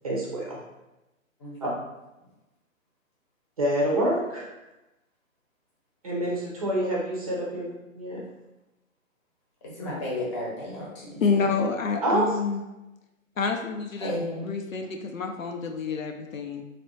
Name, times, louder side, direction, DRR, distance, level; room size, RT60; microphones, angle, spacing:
voice 1, 0.0-0.6 1.6-1.7 3.6-4.5 6.0-8.2 12.0-12.3, right 1 dB, 25° right, -3 dB, 0.7 m, -27 dB
voice 2, 9.7-11.2 14.0-14.5, left 1 dB, 20° left, -5 dB, 1.0 m, -32 dB
voice 3, 11.2-12.6 13.4-14.2 14.4-16.6, left 4 dB, 70° left, 4 dB, 0.6 m, -28 dB
3.3 x 2.5 x 4.1 m, 0.99 s
figure-of-eight pair, 140°, 41 cm